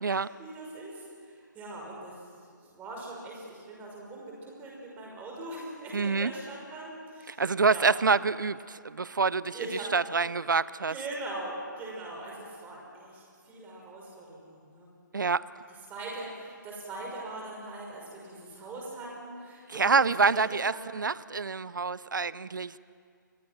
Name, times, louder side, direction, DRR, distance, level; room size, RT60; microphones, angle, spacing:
voice 1, 0.0-0.9 1.2-2.1 2.5-8.1 9.5-9.9 10.9-14.9 15.9-20.8, right 2 dB, 15° right, -2 dB, 5.8 m, -41 dB
voice 2, 5.9-6.3 7.3-9.6 9.9-10.9 15.1-15.4 19.7-22.8, right 4 dB, 70° right, 19 dB, 0.6 m, -26 dB
28.0 x 22.5 x 6.1 m, 2.2 s
figure-of-eight pair, 140°, 11 cm